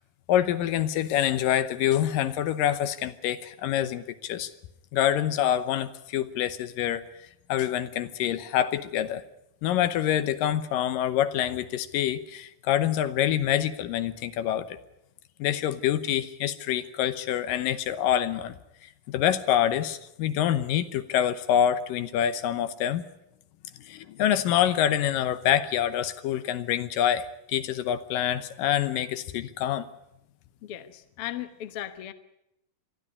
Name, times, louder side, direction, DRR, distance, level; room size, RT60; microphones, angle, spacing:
voice 1, 0.3-4.5 4.9-7.0 7.5-9.2 9.6-14.8 15.4-18.6 19.1-23.0 23.9-29.9, left 11 dB, 80° left, 12 dB, 2.6 m, -26 dB
voice 2, 30.6-32.1, left 13 dB, 60° left, 10 dB, 1.6 m, -37 dB
22.0 x 13.5 x 9.7 m, 0.83 s
omnidirectional pair, 3.9 m